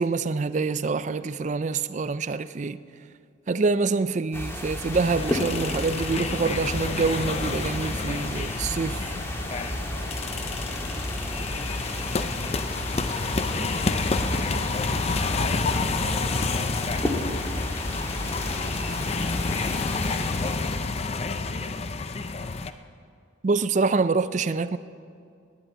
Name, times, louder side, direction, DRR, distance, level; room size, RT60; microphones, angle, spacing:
voice 1, 0.0-2.8 3.5-9.0 23.4-24.8, right 4 dB, 40° right, 0.4 m, -26 dB
sound 1, 4.3-21.1, left 1 dB, 15° left, 1.6 m, -33 dB
sound 2, 4.9-22.7, left 4 dB, 30° left, 0.5 m, -29 dB
voice 2, 9.7-14.8 15.3-21.6, right 1 dB, 90° left, 4.5 m, -49 dB
sound 3, 10.0-15.2, right 2 dB, 65° right, 1.2 m, -48 dB
11.5 x 11.0 x 9.1 m
head